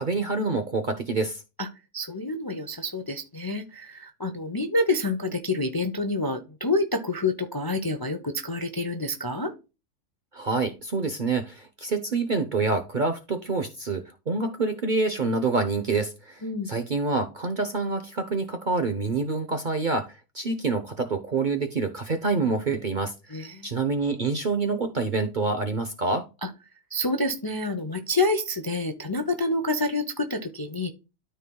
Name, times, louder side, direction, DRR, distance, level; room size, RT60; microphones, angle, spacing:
voice 1, 0.0-1.4 10.3-23.1 23.6-26.3, right 3 dB, 45° right, 0.7 m, -27 dB
voice 2, 1.9-9.5 16.4-16.7 23.3-23.7 26.4-26.5 26.9-30.9, left 2 dB, 25° left, 0.5 m, -28 dB
13.0 x 4.6 x 2.2 m
omnidirectional pair, 1.6 m